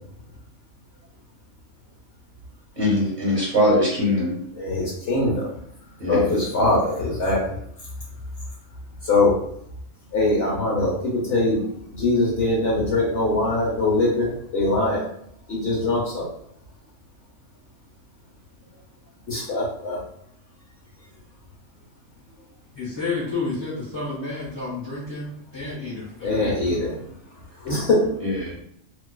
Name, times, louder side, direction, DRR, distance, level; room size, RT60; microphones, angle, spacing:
voice 1, 2.8-4.3 6.0-6.3 28.2-28.5, left 1 dB, 40° right, -6 dB, 1.0 m, -21 dB
voice 2, 4.6-5.5 6.1-7.4 9.1-9.3 10.1-11.6 12.0-15.1 15.5-16.3 19.3-20.0 26.2-26.9 27.6-28.0, left 2 dB, 60° left, -4 dB, 0.8 m, -22 dB
voice 3, 22.7-26.8, left 3 dB, 25° left, -8 dB, 0.8 m, -31 dB
2.5 x 2.3 x 2.2 m, 0.70 s
omnidirectional pair, 1.3 m